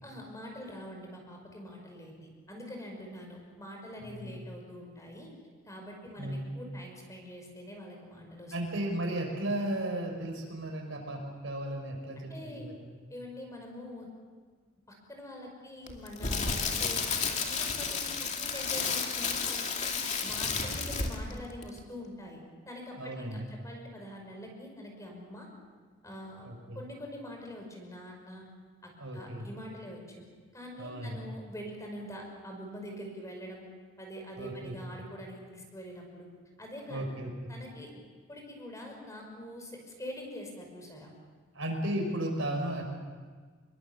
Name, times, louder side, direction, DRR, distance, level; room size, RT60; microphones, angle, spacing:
voice 1, 0.0-5.3 5.7-8.5 12.3-12.7 13.1-14.1 14.9-17.1 17.4-19.9 20.2-25.5 26.0-26.5 26.7-28.4 28.8-30.2 30.5-33.7 34.0-36.3 36.6-37.1 37.5-37.9 38.3-41.1, equal, 15° left, 1 dB, 5.6 m, -44 dB
voice 2, 4.0-4.4 6.2-6.5 8.5-12.9 22.9-23.5 26.4-26.8 29.0-29.5 30.8-31.2 34.4-34.7 36.9-37.3 41.5-42.8, right 1 dB, 65° right, 2 dB, 5.9 m, -35 dB
Crackle, 15.9-21.3 21.6-21.8, left 5 dB, 35° left, 2.5 m, -32 dB
27.0 x 23.0 x 7.2 m, 1.5 s
head